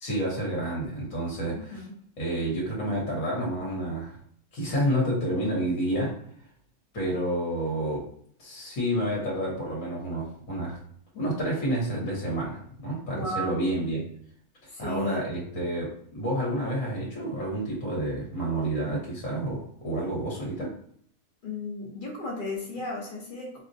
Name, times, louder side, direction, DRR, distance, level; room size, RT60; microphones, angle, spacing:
voice 1, 0.0-1.8 2.2-4.2 4.5-6.1 6.9-8.0 8.4-10.8 11.1-14.0 14.8-20.7, right 1 dB, 65° left, -3 dB, 1.4 m, -29 dB
voice 2, 1.5-1.9 13.1-13.6 14.7-15.3 21.4-23.6, left 1 dB, 45° left, -2 dB, 0.8 m, -35 dB
4.2 x 2.0 x 2.6 m, 0.63 s
omnidirectional pair, 1.5 m